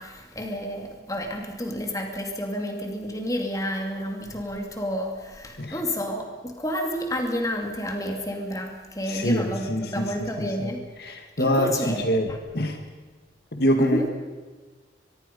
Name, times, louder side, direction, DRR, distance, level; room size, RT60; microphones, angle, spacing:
voice 1, 0.0-10.8 11.4-12.4 13.8-14.1, equal, 20° left, 3 dB, 2.7 m, -30 dB
voice 2, 9.1-10.7 11.0-12.8 13.5-14.1, equal, 55° left, 5 dB, 1.9 m, -25 dB
24.0 x 22.0 x 5.5 m, 1.4 s
head